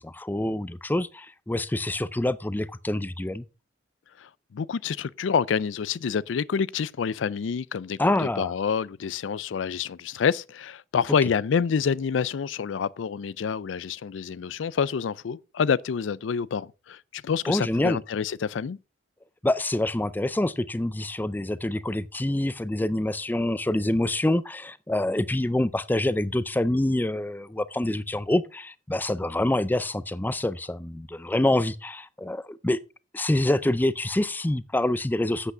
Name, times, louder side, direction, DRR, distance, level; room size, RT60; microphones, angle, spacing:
voice 1, 0.0-3.4 8.0-8.5 17.5-18.0 19.4-32.8 33.1-35.5, left 1 dB, 10° left, 0.4 m, -26 dB
voice 2, 4.2-18.8, left 6 dB, 85° left, 0.4 m, -27 dB
8.3 x 8.1 x 5.0 m
head